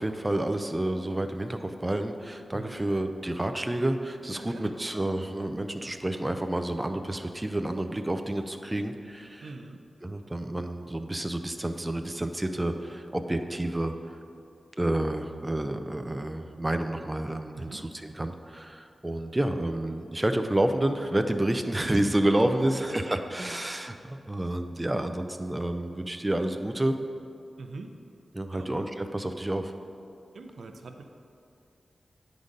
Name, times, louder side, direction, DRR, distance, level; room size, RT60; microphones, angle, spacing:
voice 1, 0.0-9.5 10.0-13.9 14.8-27.0 28.3-29.7, right 1 dB, 20° right, 7 dB, 0.4 m, -29 dB
voice 2, 2.5-2.9 4.3-4.9 9.4-9.8 17.5-17.8 21.9-22.6 27.6-27.9 28.5-28.7 30.3-31.0, right 3 dB, 80° right, 6 dB, 0.5 m, -43 dB
9.5 x 3.9 x 5.1 m, 2.5 s
cardioid pair, 70°, 0 cm